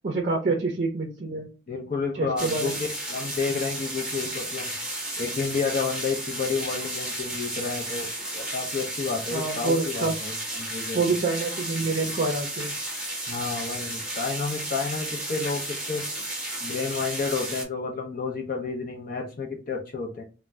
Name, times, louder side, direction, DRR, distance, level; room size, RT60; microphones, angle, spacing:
voice 1, 0.0-1.5 2.1-2.7 9.3-10.2 10.9-12.7, right 3 dB, 40° right, 2 dB, 0.5 m, -27 dB
voice 2, 1.7-4.7 5.2-8.1 8.3-11.0 13.3-16.1 16.6-20.2, left 4 dB, 50° left, 0 dB, 0.6 m, -30 dB
sound 1, 2.4-17.7, right 1 dB, 5° right, 0.8 m, -33 dB
2.5 x 2.1 x 3.2 m, 0.34 s
head